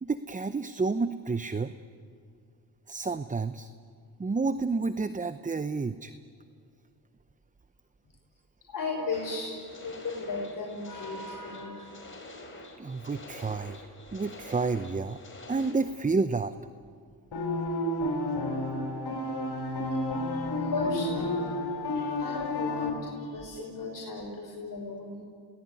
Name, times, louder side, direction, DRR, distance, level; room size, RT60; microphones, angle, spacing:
voice 1, 0.0-1.7 2.9-3.7 4.2-6.1 12.8-13.9 14.1-15.2 15.5-16.5, right 4 dB, 20° right, 12 dB, 0.7 m, -30 dB
voice 2, 8.7-11.9 20.3-21.4 21.9-25.2, left 3 dB, 50° left, -2 dB, 5.4 m, -36 dB
sound 1, 9.1-15.7, left 2 dB, 30° left, 5.2 m, -47 dB
sound 2, 17.3-22.9, left 1 dB, 70° left, 5.3 m, -31 dB
29.0 x 19.0 x 9.7 m, 2.3 s
cardioid pair, 85°, 40 cm